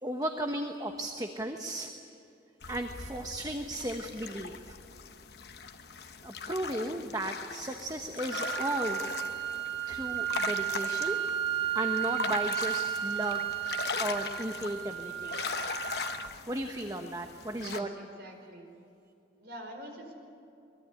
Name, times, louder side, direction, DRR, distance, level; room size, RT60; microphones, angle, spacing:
voice 1, 0.0-1.9 2.7-4.8 6.2-9.0 9.9-11.2 11.7-13.4 14.0-15.4 16.5-17.9, right 1 dB, 20° right, 4 dB, 1.0 m, -35 dB
sound 1, 2.6-17.8, left 5 dB, 60° left, 1.0 m, -40 dB
sound 2, 8.3-16.3, right 11 dB, 80° right, 1.7 m, -33 dB
voice 2, 17.5-18.7 19.4-20.1, equal, 65° right, 3 dB, 5.0 m, -46 dB
23.5 x 21.5 x 9.9 m, 2.6 s
head